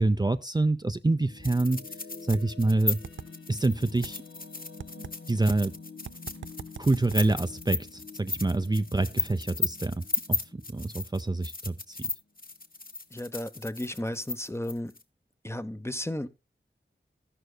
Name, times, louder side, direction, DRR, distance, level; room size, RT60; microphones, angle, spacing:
voice 1, 0.0-1.9 2.2-3.0 3.5-4.2 5.3-5.7 6.8-12.1, right 2 dB, 20° right, 0.5 m, -27 dB
sound 1, 0.8-11.9, left 4 dB, 75° left, 1.6 m, -48 dB
sound 2, 1.4-15.0, left 3 dB, 50° left, 1.3 m, -35 dB
sound 3, 2.3-2.4 3.0-3.3 4.0-4.1 4.8-5.1 6.1-7.4, right 7 dB, 85° right, 0.5 m, -39 dB
voice 2, 13.1-14.9 15.4-16.3, left 1 dB, 15° left, 0.8 m, -34 dB
14.0 x 11.5 x 2.3 m
wide cardioid pair, 50°, 19 cm